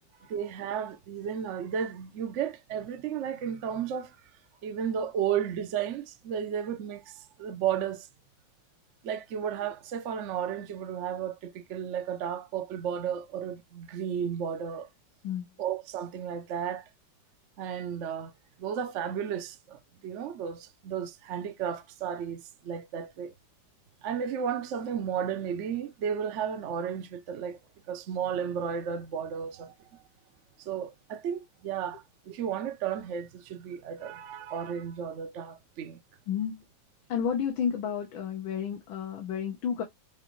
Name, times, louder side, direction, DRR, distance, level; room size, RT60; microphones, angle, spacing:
voice 1, 0.2-4.2 4.6-8.1 9.0-14.9 15.6-16.8 17.6-18.3 18.6-23.3 24.0-27.6 27.9-29.7 30.6-36.0, right 8 dB, 65° right, 0.7 m, -33 dB
voice 2, 36.3-36.6 37.1-39.8, left 7 dB, 90° left, 1.8 m, -31 dB
6.2 x 2.6 x 3.0 m
omnidirectional pair, 2.1 m